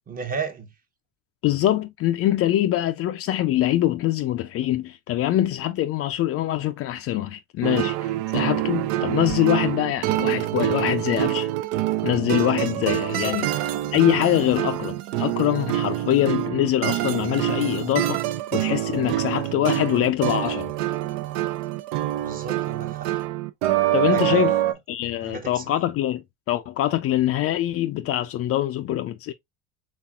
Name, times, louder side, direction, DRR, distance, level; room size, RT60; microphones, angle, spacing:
voice 1, 0.1-0.7 13.1-13.4 22.2-23.1 24.1-24.8 25.2-25.6, right 5 dB, 25° right, 0.8 m, -33 dB
voice 2, 1.4-11.5 12.0-13.5 13.9-18.2 18.5-20.7 23.9-24.5 24.9-29.3, left 13 dB, 45° left, 0.4 m, -24 dB
sound 1, 7.6-24.7, right 14 dB, 80° right, 0.6 m, -25 dB
4.2 x 3.5 x 2.2 m
supercardioid pair, 110°, 33 cm